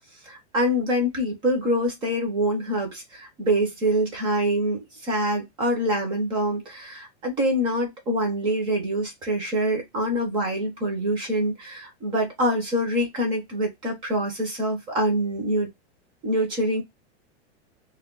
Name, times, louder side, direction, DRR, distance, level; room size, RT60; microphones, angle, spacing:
voice 1, 0.3-15.7 16.2-16.8, equal, 15° right, 0.5 m, -25 dB
2.2 x 2.1 x 3.6 m
supercardioid pair, 165°, 36 cm